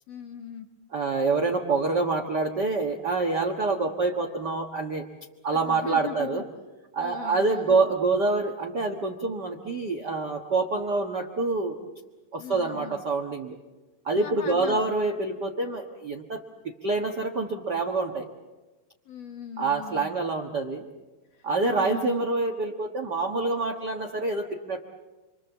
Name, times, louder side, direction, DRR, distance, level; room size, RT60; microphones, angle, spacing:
voice 1, 0.1-0.7 5.5-6.5 7.0-7.9 12.4-13.0 14.2-14.8 19.1-20.1 21.7-22.2, left 8 dB, 55° left, 5 dB, 2.2 m, -39 dB
voice 2, 0.9-5.1 5.4-6.4 6.9-11.8 12.3-13.6 14.0-18.2 19.6-20.8 21.4-24.8, right 3 dB, 70° right, 2 dB, 1.0 m, -26 dB
29.0 x 24.5 x 7.2 m, 1.2 s
omnidirectional pair, 4.3 m